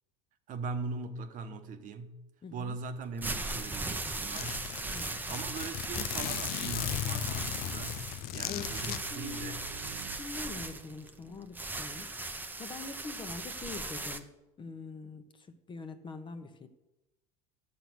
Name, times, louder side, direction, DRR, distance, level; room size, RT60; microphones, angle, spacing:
voice 1, 0.5-2.2 2.5-8.0 8.3-9.6, right 4 dB, 50° right, 1.1 m, -40 dB
voice 2, 2.4-2.8 4.9-5.1 8.4-9.6 10.2-14.3 14.6-16.7, left 4 dB, 30° left, 1.2 m, -44 dB
sound 1, 3.0-14.2, right 2 dB, 10° right, 0.9 m, -38 dB
Zipper (clothing), 3.6-3.7 3.9-4.0 4.4-9.0, left 13 dB, 60° left, 0.6 m, -36 dB
sound 2, 8.4-10.7, right 9 dB, 65° right, 0.7 m, -48 dB
11.0 x 7.1 x 6.2 m
supercardioid pair, 105°, 18 cm